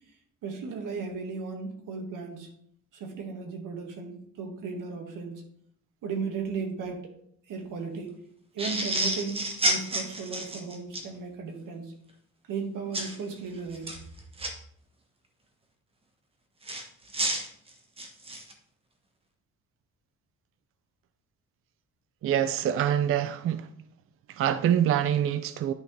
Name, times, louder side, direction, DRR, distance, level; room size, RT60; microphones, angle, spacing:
voice 1, 0.4-2.5 2.9-5.4 6.0-7.0 7.5-8.1 8.5-11.9 12.5-13.9, right 5 dB, 90° right, 3 dB, 1.8 m, -35 dB
sound 1, 8.6-11.1 12.9-13.2 13.7-14.5 16.6-18.5, right 1 dB, 20° right, 1.0 m, -30 dB
voice 2, 22.2-23.7 24.3-25.7, right 10 dB, 45° right, 12 dB, 0.4 m, -25 dB
10.5 x 6.1 x 3.3 m, 0.66 s
cardioid pair, 165°, 31 cm